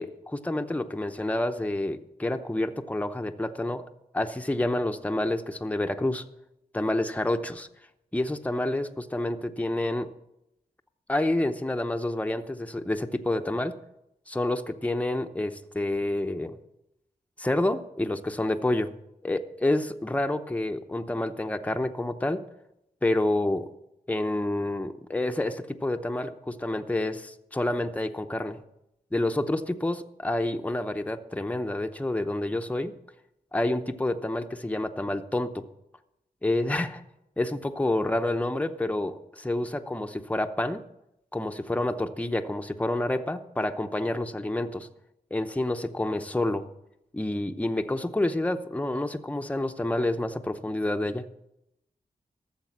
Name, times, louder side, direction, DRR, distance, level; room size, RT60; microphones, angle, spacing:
voice 1, 0.0-3.8 4.1-6.2 6.7-7.7 8.1-10.1 11.1-13.7 14.3-16.6 17.4-18.9 19.2-22.4 23.0-23.7 24.1-28.6 29.1-32.9 33.5-35.7 36.4-37.0 37.4-40.8 41.3-44.9 45.3-46.7 47.1-51.3, left 1 dB, 10° left, 6 dB, 0.8 m, -28 dB
13.5 x 7.3 x 7.3 m, 0.85 s
wide cardioid pair, 85°, 15 cm